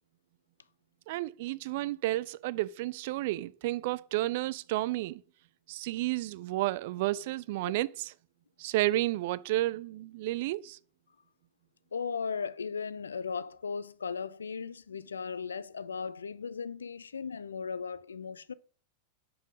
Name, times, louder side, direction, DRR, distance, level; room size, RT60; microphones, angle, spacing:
voice 1, 1.1-5.2 5.7-8.1 8.6-10.8, right 17 dB, 50° right, 0.3 m, -31 dB
voice 2, 11.9-18.5, left 5 dB, 70° left, 0.4 m, -37 dB
5.5 x 5.4 x 4.8 m
figure-of-eight pair, 90°, 0 cm